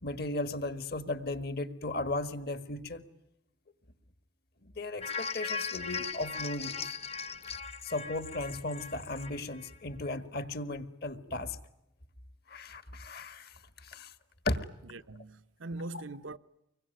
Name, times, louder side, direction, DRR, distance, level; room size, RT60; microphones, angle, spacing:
voice 1, 0.0-3.0 4.6-6.9 7.8-11.6 12.5-14.1 14.4-14.6 15.9-16.0, left 2 dB, 50° left, 1.7 m, -36 dB
sound 1, 5.0-9.7 10.1-10.2, left 5 dB, 30° left, 1.1 m, -38 dB
voice 2, 14.9-16.4, right 2 dB, 75° right, 0.9 m, -41 dB
26.0 x 22.5 x 9.2 m
head